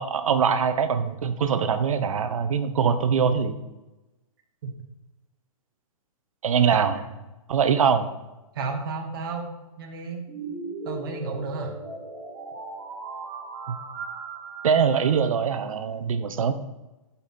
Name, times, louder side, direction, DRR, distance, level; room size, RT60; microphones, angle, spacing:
voice 1, 0.0-3.6 6.4-7.0 7.5-8.1 13.7-13.8 14.6-16.5, right 6 dB, 65° right, 10 dB, 0.9 m, -23 dB
voice 2, 6.8-7.2 8.5-10.3 10.8-11.8, right 4 dB, 40° right, 2 dB, 1.2 m, -33 dB
sound 1, 10.3-15.4, right 4 dB, 20° right, 1.4 m, -37 dB
8.1 x 5.7 x 4.3 m, 1.0 s
hypercardioid pair, 175°, 19 cm